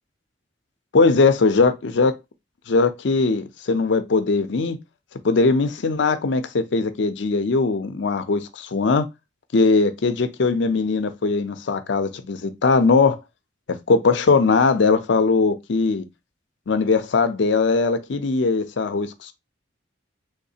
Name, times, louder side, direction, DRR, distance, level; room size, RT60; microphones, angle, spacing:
voice 1, 0.9-2.1 2.7-4.8 5.2-9.1 9.5-13.2 13.9-16.0 16.7-19.3, left 4 dB, 65° left, 0.5 m, -20 dB
3.5 x 3.1 x 2.7 m
head